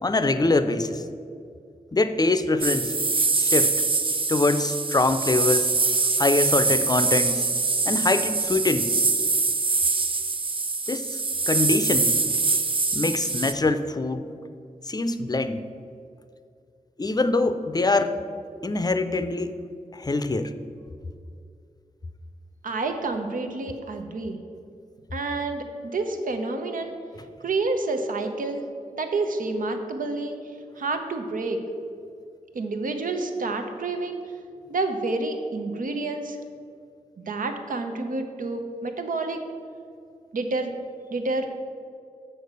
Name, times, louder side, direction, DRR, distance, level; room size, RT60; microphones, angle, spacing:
voice 1, 0.0-1.0 1.9-2.9 3.3-3.7 4.3-5.7 6.2-7.4 7.9-9.0 10.9-11.2 11.5-12.2 12.9-14.3 14.8-15.6 17.0-18.2 18.6-19.5 19.9-20.5, left 2 dB, 25° left, 11 dB, 0.5 m, -24 dB
sound 1, 2.6-13.5, right 3 dB, 35° right, 0.6 m, -24 dB
voice 2, 22.6-24.4 25.1-27.0 27.4-28.6 29.0-30.4 30.8-31.6 32.5-34.2 34.7-36.4 37.3-39.4 40.3-40.7 41.1-41.5, right 3 dB, 70° right, 5 dB, 0.7 m, -28 dB
6.5 x 4.5 x 6.6 m, 2.3 s
cardioid pair, 40°, 15 cm